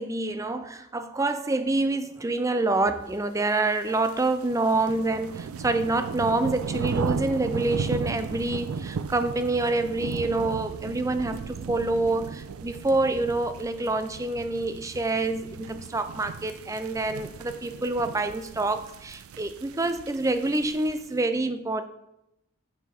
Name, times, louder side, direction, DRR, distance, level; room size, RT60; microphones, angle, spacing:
voice 1, 0.0-21.9, right 2 dB, 15° right, 10 dB, 0.4 m, -27 dB
sound 1, 3.6-21.1, right 5 dB, 90° right, 0.4 m, -36 dB
7.4 x 5.8 x 4.3 m, 0.86 s
head